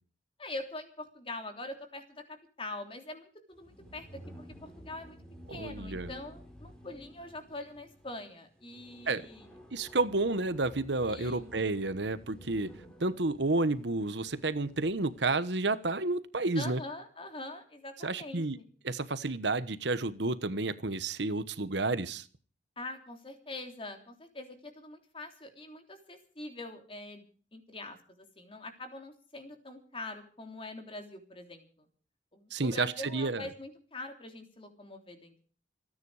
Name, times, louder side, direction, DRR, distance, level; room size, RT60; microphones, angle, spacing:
voice 1, 0.4-4.2 4.6-5.2 5.5-9.5 11.1-11.5 16.5-18.7 22.8-27.2 27.5-31.9 32.3-35.4, left 2 dB, 30° left, 5 dB, 3.3 m, -44 dB
sound 1, 3.5-15.5, equal, 5° left, 4.6 m, -52 dB
voice 2, 5.5-6.1 9.1-9.3 9.7-12.7 13.0-16.8 18.0-18.6 18.8-22.3 32.5-33.5, right 2 dB, 70° right, 13 dB, 1.2 m, -31 dB
28.0 x 9.9 x 4.9 m, 0.41 s
head